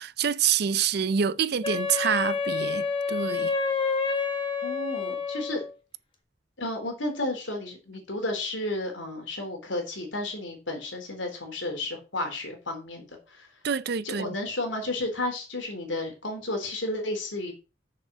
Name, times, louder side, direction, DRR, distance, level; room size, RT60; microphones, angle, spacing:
voice 1, 0.0-3.5 13.6-14.4, right 7 dB, 60° right, 0.5 m, -27 dB
Wind instrument woodwind instrument, 1.6-5.7, left 5 dB, 30° left, 1.7 m, -28 dB
voice 2, 4.6-5.6 6.6-13.5 14.0-17.5, left 2 dB, 85° left, 3.5 m, -32 dB
7.1 x 6.8 x 6.1 m
head